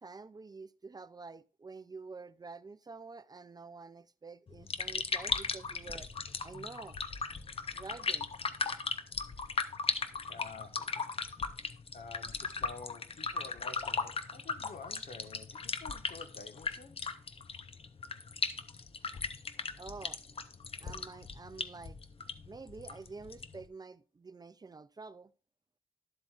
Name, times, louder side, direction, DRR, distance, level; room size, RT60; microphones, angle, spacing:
voice 1, 0.0-6.1 6.4-7.0 7.7-8.3 19.8-20.2 20.8-22.0 22.5-25.3, right 4 dB, 25° right, 0.3 m, -48 dB
sound 1, 4.5-23.6, left 4 dB, 40° left, 0.6 m, -37 dB
voice 2, 10.3-11.0 11.9-17.0, left 4 dB, 65° left, 1.3 m, -49 dB
12.0 x 7.8 x 2.4 m
wide cardioid pair, 170°, 15 cm